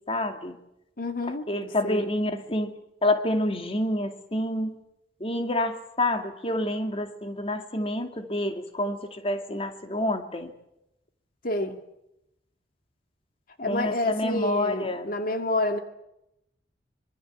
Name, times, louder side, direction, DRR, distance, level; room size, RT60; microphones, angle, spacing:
voice 1, 0.1-0.6 1.5-2.7 3.0-4.7 5.2-10.5 13.7-15.1, left 1 dB, 35° left, 6 dB, 2.5 m, -28 dB
voice 2, 1.0-2.1 11.4-11.8 13.6-15.8, left 2 dB, 55° left, 6 dB, 2.3 m, -29 dB
26.0 x 24.5 x 7.3 m, 0.84 s
head